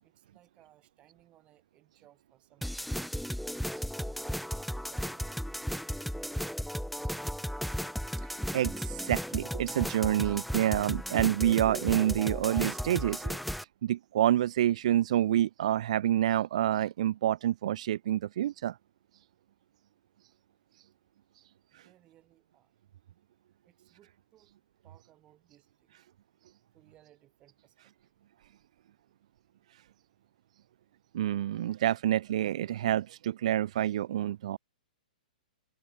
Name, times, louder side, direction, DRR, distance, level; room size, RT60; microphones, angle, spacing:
voice 1, 0.0-3.4 3.9-5.4 6.0-6.7 21.7-22.7 23.6-24.5 24.8-26.0 26.7-28.1, right 13 dB, 25° right, 8.0 m, -63 dB
sound 1, 2.6-13.6, equal, ahead, 0.8 m, -35 dB
voice 2, 8.5-13.4 13.8-18.8 31.1-34.6, right 12 dB, 50° right, 0.4 m, -28 dB
figure-of-eight pair, 115°, 5 cm